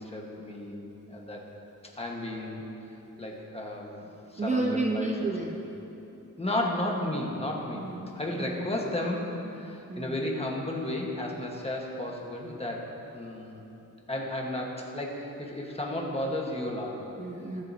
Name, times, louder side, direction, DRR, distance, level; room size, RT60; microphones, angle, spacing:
voice 1, 0.0-1.4 1.9-2.7 3.2-5.1 6.4-7.9 8.1-13.6 14.1-17.0, left 1 dB, 20° left, -1 dB, 1.3 m, -33 dB
voice 2, 4.4-5.6 7.8-8.5 9.9-10.3 17.2-17.6, right 2 dB, 20° right, 0 dB, 0.5 m, -31 dB
20.5 x 7.6 x 2.8 m, 3.0 s
wide cardioid pair, 150°, 33 cm